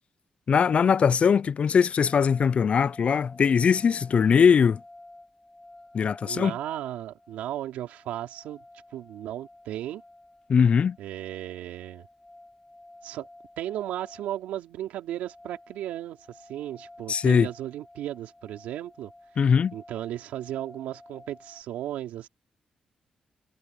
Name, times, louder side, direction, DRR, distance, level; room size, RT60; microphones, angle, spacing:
voice 1, 0.5-4.8 5.9-6.6 10.5-11.0 17.1-17.5 19.4-19.7, left 6 dB, 55° left, 0.4 m, -21 dB
sound 1, 2.0-21.6, left 2 dB, 15° left, 2.6 m, -52 dB
voice 2, 6.2-8.6 8.9-10.0 11.0-12.1 13.0-13.3 13.6-19.1 19.7-22.3, right 12 dB, 85° right, 3.2 m, -35 dB
supercardioid pair, 55°, 2 cm